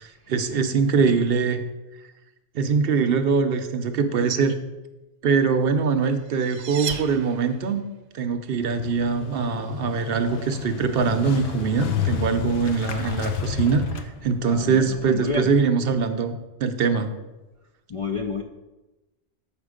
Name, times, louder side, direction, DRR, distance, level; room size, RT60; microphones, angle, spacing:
voice 1, 0.0-1.6 2.5-4.6 5.2-7.8 8.1-17.1, right 5 dB, 65° right, 8 dB, 0.8 m, -23 dB
sound 1, 6.0-7.9, right 7 dB, 90° right, 1.0 m, -35 dB
Motorcycle, 8.6-15.4, left 7 dB, 90° left, 1.0 m, -31 dB
voice 2, 14.4-15.5 17.9-18.4, left 4 dB, 45° left, 2 dB, 0.4 m, -30 dB
7.3 x 5.1 x 5.0 m, 1.1 s
omnidirectional pair, 1.1 m